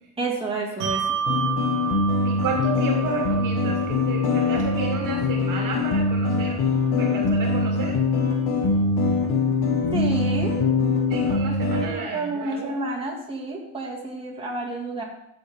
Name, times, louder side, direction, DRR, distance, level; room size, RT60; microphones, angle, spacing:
voice 1, 0.2-1.0 9.9-10.5 11.7-15.0, right 3 dB, 15° right, -3 dB, 2.3 m, -30 dB
Bell, 0.8-7.7, right 7 dB, 90° right, 1.9 m, -32 dB
sound 1, 1.3-11.9, left 3 dB, 70° left, 2.1 m, -23 dB
voice 2, 2.2-6.7 7.0-8.0 11.1-12.8, right 4 dB, 55° right, 1 dB, 2.2 m, -31 dB
14.5 x 6.3 x 3.7 m, 0.79 s
cardioid pair, 130°, 39 cm